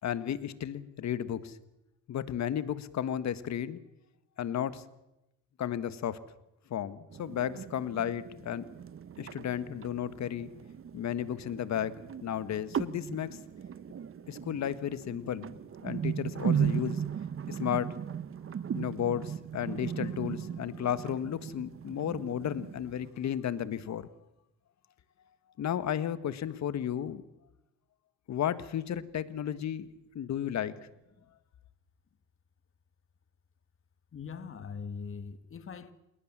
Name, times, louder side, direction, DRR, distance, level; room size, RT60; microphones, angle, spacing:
voice 1, 0.0-1.6 2.1-3.8 4.4-4.8 5.6-6.2 6.7-8.6 9.2-10.5 10.9-13.4 14.3-15.5 15.8-17.0 17.5-18.0 18.7-24.1 25.6-27.2 28.3-29.9 30.1-30.7, left 10 dB, 65° left, 14 dB, 1.7 m, -33 dB
sound 1, 7.1-23.1, right 8 dB, 45° right, 1.1 m, -37 dB
voice 2, 34.1-35.9, left 5 dB, 45° left, 12 dB, 1.9 m, -41 dB
27.5 x 20.5 x 7.5 m, 0.91 s
cardioid pair, 90°, 30 cm